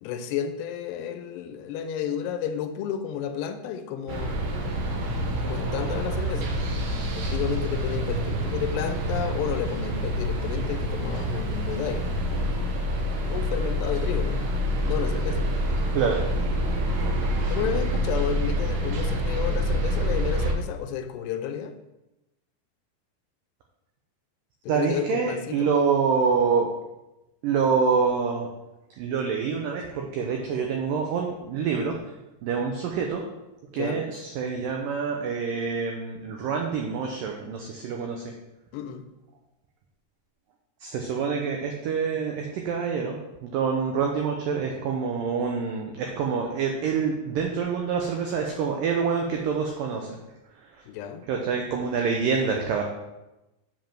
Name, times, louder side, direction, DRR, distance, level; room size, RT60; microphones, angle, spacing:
voice 1, 0.0-4.4 5.4-6.5 7.2-12.8 13.3-14.4 14.8-15.4 17.5-21.7 24.6-25.7 33.8-34.0 38.7-39.1 46.3-46.4 50.9-51.2, left 8 dB, 85° left, 8 dB, 2.7 m, -32 dB
sound 1, 4.1-20.5, equal, 65° right, 2.2 m, -27 dB
voice 2, 24.7-26.8 27.4-28.5 29.0-31.9 32.4-33.2 33.7-38.3 40.8-50.2 50.7-50.8 51.3-52.8, right 5 dB, 90° right, 1 dB, 1.9 m, -26 dB
7.4 x 5.2 x 5.8 m, 0.99 s
omnidirectional pair, 4.9 m